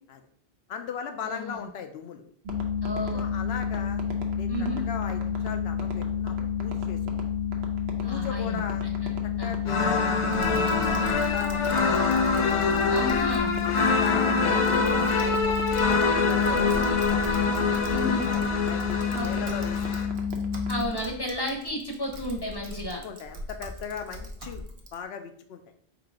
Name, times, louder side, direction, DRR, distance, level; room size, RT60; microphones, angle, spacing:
voice 1, 0.7-2.2 3.1-4.0 4.4-4.5 4.9-7.2 8.0-8.9 9.4-13.0 13.6-15.6 16.0-17.1 17.5-20.0 22.7-24.6 24.9-25.6, left 7 dB, 75° left, 6 dB, 0.8 m, -38 dB
voice 2, 1.2-1.7 2.8-3.2 4.5-4.8 8.0-9.1 9.4-9.5 12.9-13.5 17.9-18.3 19.1-19.5 20.7-23.0, left 1 dB, 25° left, 0 dB, 0.7 m, -33 dB
sound 1, 2.5-20.8, left 7 dB, 80° right, 1.0 m, -30 dB
sound 2, 9.6-20.1, left 3 dB, 55° left, 0.3 m, -25 dB
Typing, 10.3-25.0, equal, 40° right, 0.6 m, -42 dB
3.9 x 2.8 x 4.7 m, 0.63 s
omnidirectional pair, 1.1 m